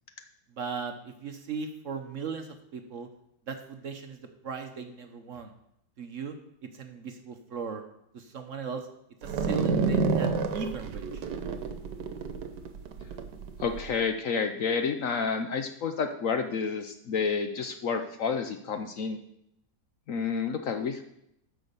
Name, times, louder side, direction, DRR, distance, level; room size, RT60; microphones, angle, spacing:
voice 1, 0.6-3.1 3.5-4.2 4.4-5.5 6.0-6.4 6.6-7.8 8.1-8.9 9.2-11.2, right 5 dB, 55° right, 6 dB, 1.0 m, -38 dB
sound 1, 9.2-13.9, right 4 dB, 80° right, 1.5 m, -29 dB
voice 2, 13.6-19.2 20.1-21.0, left 5 dB, 60° left, 7 dB, 1.0 m, -30 dB
9.4 x 6.3 x 6.7 m, 0.78 s
omnidirectional pair, 1.8 m